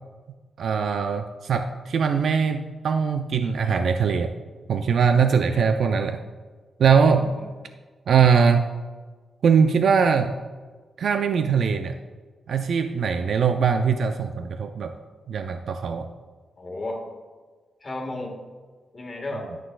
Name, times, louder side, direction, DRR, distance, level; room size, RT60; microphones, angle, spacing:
voice 1, 0.6-4.4 4.7-6.2 6.8-7.3 8.1-8.7 9.4-10.4 11.0-12.0 12.5-14.9 15.3-16.1, right 6 dB, 65° right, 7 dB, 0.4 m, -21 dB
voice 2, 7.0-7.4 16.6-17.0 17.8-18.4 18.9-19.5, left 2 dB, 30° left, 0 dB, 1.5 m, -34 dB
11.5 x 6.1 x 2.3 m, 1.4 s
wide cardioid pair, 145°, 0 cm